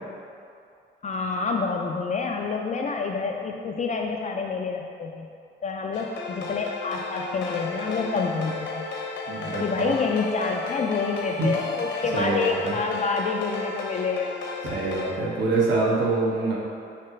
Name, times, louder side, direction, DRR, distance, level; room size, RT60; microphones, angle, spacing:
voice 1, 1.0-5.3 5.6-8.8 9.6-14.4, left 4 dB, 40° left, 1 dB, 0.4 m, -28 dB
sound 1, 5.9-15.1, left 4 dB, 65° left, 0.9 m, -33 dB
voice 2, 9.3-9.9 11.4-11.5 12.1-12.7 14.6-16.6, right 3 dB, 65° right, -5 dB, 1.2 m, -25 dB
6.6 x 2.9 x 5.7 m, 2.4 s
cardioid pair, 90°, 20 cm